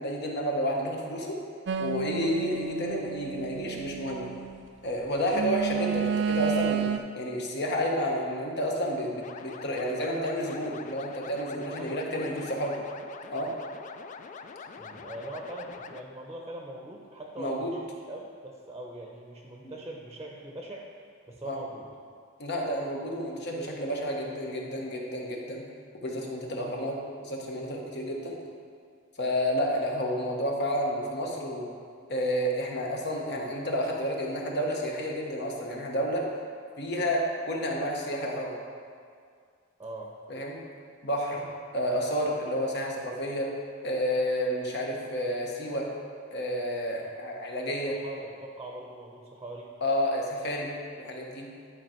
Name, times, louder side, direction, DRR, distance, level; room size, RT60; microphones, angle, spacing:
voice 1, 0.0-1.4 1.8-4.3 4.8-12.8 13.3-13.5 17.4-17.7 19.6-19.7 21.4-21.6 22.4-25.7 26.0-28.4 29.2-31.7 32.1-36.2 36.8-37.2 37.5-38.6 40.3-40.6 41.0-41.5 41.7-43.5 43.8-45.9 46.3-47.9 49.8-50.7 51.0-51.5, equal, 60° left, 0 dB, 1.2 m, -30 dB
sound 1, 1.7-4.6 5.3-7.0, right 7 dB, 60° right, 0.4 m, -31 dB
sound 2, 9.2-16.0, left 5 dB, 40° left, 0.3 m, -44 dB
voice 2, 11.8-12.5 14.8-20.9 21.3-21.9 39.8-40.1 47.0-47.1 47.9-49.7, right 1 dB, 15° right, -1 dB, 0.7 m, -42 dB
10.5 x 4.9 x 4.5 m, 2.2 s
head